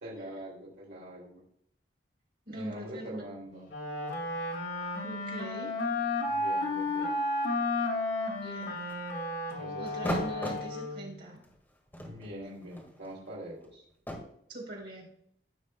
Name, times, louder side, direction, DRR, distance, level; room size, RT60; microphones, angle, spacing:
voice 1, 0.0-1.4 2.5-3.7 6.2-7.1 9.6-9.9 12.0-13.8, equal, 80° right, -4 dB, 2.9 m, -43 dB
voice 2, 2.5-3.2 5.0-5.7 8.4-8.8 9.8-11.4 14.5-15.1, right 1 dB, 60° right, -2 dB, 3.9 m, -41 dB
Wind instrument woodwind instrument, 3.7-11.2, left 2 dB, 85° left, 2.1 m, -33 dB
sound 1, 8.3-9.2 9.9-10.7 11.4-11.6 11.9-14.2, equal, 10° left, 1.7 m, -37 dB
15.5 x 6.1 x 2.2 m, 0.70 s
head